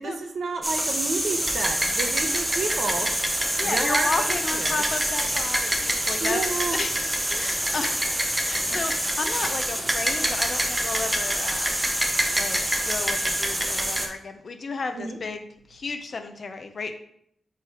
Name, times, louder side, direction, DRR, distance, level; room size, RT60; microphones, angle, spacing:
voice 1, 0.0-3.1 3.6-4.9 5.9-6.8 8.7-8.8 14.9-15.2, right 4 dB, 60° right, 5 dB, 0.8 m, -31 dB
sound 1, 0.6-14.1, right 1 dB, 10° right, 0.8 m, -26 dB
voice 2, 3.5-7.0 7.3-8.0 8.4-11.8 12.4-16.9, left 4 dB, 40° left, 7 dB, 0.6 m, -33 dB
4.8 x 4.6 x 4.7 m, 0.71 s
wide cardioid pair, 160°, 0 cm